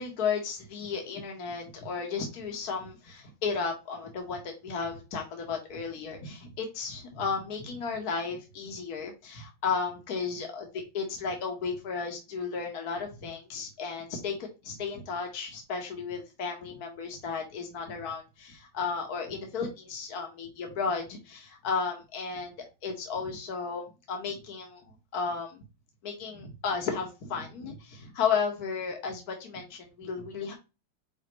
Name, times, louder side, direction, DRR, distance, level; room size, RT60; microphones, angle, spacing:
voice 1, 0.0-22.5 22.8-25.6 26.0-30.5, left 5 dB, 55° left, 2 dB, 1.9 m, -34 dB
9.0 x 3.6 x 3.2 m, 0.28 s
omnidirectional pair, 2.1 m